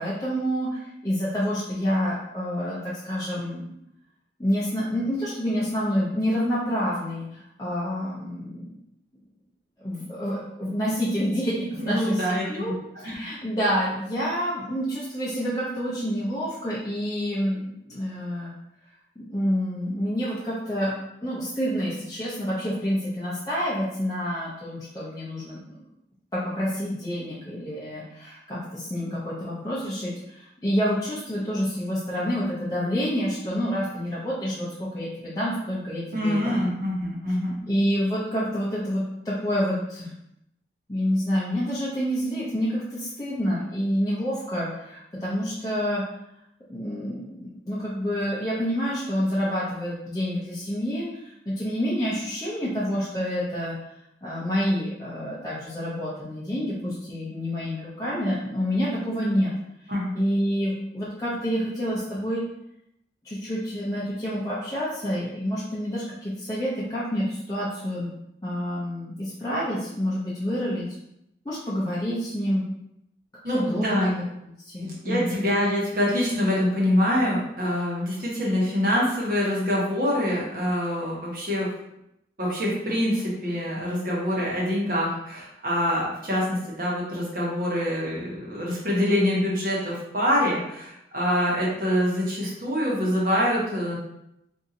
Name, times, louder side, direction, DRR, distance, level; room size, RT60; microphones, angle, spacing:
voice 1, 0.0-3.7 4.4-8.7 9.8-18.5 19.2-20.9 21.2-25.8 26.3-36.6 37.7-40.1 40.9-46.0 46.7-53.7 54.2-59.5 60.1-62.4 63.2-68.1 68.4-70.9 71.4-72.6 73.4-75.5, equal, 20° left, -9 dB, 0.6 m, -28 dB
voice 2, 11.8-12.7 13.0-13.1 36.1-37.6 59.9-60.2 73.4-74.1 74.8-81.7 82.4-94.0, equal, 50° right, -5 dB, 1.1 m, -25 dB
2.8 x 2.6 x 3.7 m, 0.80 s
head